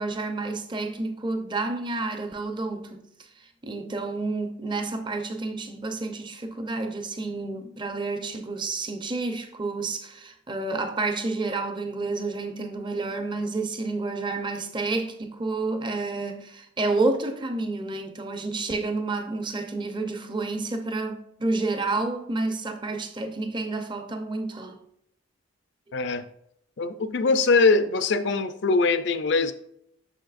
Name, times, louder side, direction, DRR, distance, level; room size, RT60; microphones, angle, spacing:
voice 1, 0.0-3.0 3.4-24.8, right 3 dB, 25° right, 0.6 m, -30 dB
voice 2, 25.9-26.3 26.8-29.5, left 3 dB, 60° left, 0.5 m, -22 dB
6.4 x 6.4 x 2.5 m
head